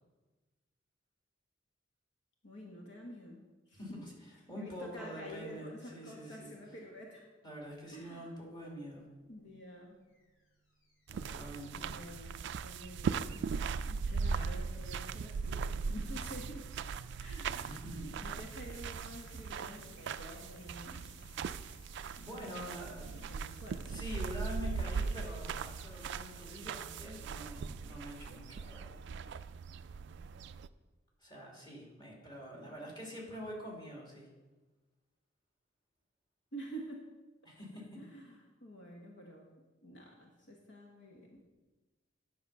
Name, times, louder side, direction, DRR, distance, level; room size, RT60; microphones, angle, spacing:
voice 1, 2.4-3.8 4.6-7.3 7.9-8.3 9.3-10.0 11.7-13.4 13.9-16.7 17.2-17.8 18.2-21.2 22.4-24.0 32.5-32.8 36.5-37.1 37.9-39.5 39.8-41.4, equal, 65° left, -1 dB, 1.3 m, -49 dB
voice 2, 3.7-6.5 7.4-9.0 11.1-11.9 17.6-18.2 22.1-23.3 23.9-29.0 31.2-34.3 37.4-38.0, equal, 25° left, -3 dB, 2.7 m, -46 dB
sound 1, 9.0-27.0, left 2 dB, 80° left, 1.9 m, -61 dB
sound 2, 11.1-30.7, right 5 dB, 60° right, 0.3 m, -39 dB
10.0 x 6.1 x 5.6 m, 1.2 s
head